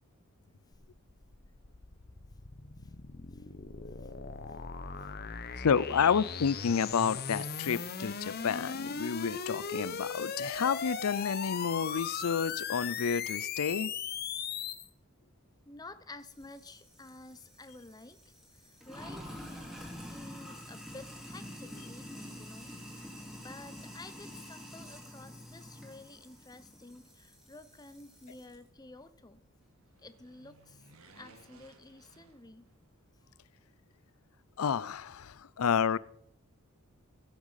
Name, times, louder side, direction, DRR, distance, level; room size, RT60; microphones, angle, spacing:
sound 1, 0.7-14.9, left 6 dB, 45° left, 0.9 m, -38 dB
voice 1, 5.6-13.9 34.6-36.0, left 6 dB, 75° left, 20 dB, 0.5 m, -30 dB
voice 2, 15.7-18.2 18.5-19.6 20.0-29.4 30.0-30.9 31.1-32.7, left 2 dB, 20° left, 12 dB, 0.7 m, -51 dB
Sink (filling or washing), 16.2-28.6, equal, ahead, 2.4 m, -48 dB
sound 2, 29.6-33.0 33.3-33.4, right 3 dB, 70° right, 1.7 m, -60 dB
15.5 x 8.2 x 5.7 m, 0.72 s
head